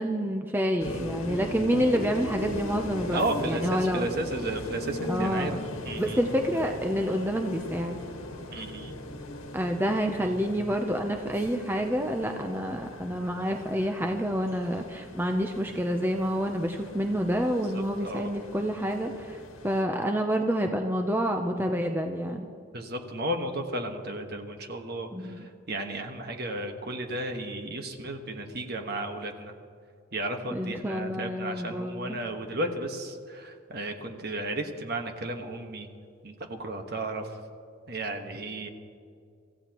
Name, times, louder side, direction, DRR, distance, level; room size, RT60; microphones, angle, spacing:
voice 1, 0.0-4.1 5.1-5.6 6.0-8.0 9.5-22.5 25.1-25.5 30.5-32.2, equal, 10° right, 3 dB, 0.6 m, -28 dB
sound 1, 0.8-19.8, left 1 dB, 85° left, 1.7 m, -39 dB
voice 2, 3.1-5.5 5.8-6.2 8.5-8.9 17.7-18.4 22.7-25.1 25.7-29.5 30.1-35.9 36.2-36.3 36.6-37.3 37.9-38.7, right 1 dB, 50° right, 4 dB, 1.4 m, -33 dB
25.0 x 15.0 x 3.0 m, 2.3 s
head